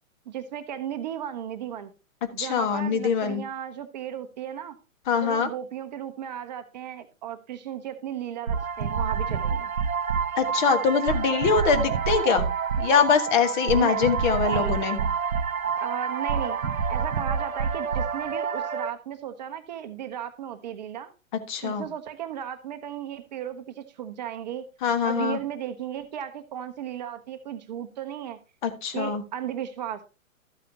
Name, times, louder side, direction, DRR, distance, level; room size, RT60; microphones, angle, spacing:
voice 1, 0.3-1.9 2.3-4.8 5.2-9.7 13.8-14.0 14.5-14.8 15.8-16.6 16.9-21.1 21.6-24.6 25.0-28.4 28.9-30.0, right 10 dB, 30° right, 9 dB, 0.7 m, -35 dB
voice 2, 2.4-3.4 5.1-5.5 10.4-12.5 12.8-15.0 21.5-21.9 24.8-25.4 28.6-29.2, left 6 dB, 35° left, 8 dB, 1.4 m, -23 dB
sound 1, 8.5-18.9, right 6 dB, 85° right, 0.7 m, -27 dB
13.0 x 8.3 x 2.7 m, 0.29 s
figure-of-eight pair, 115°, 41 cm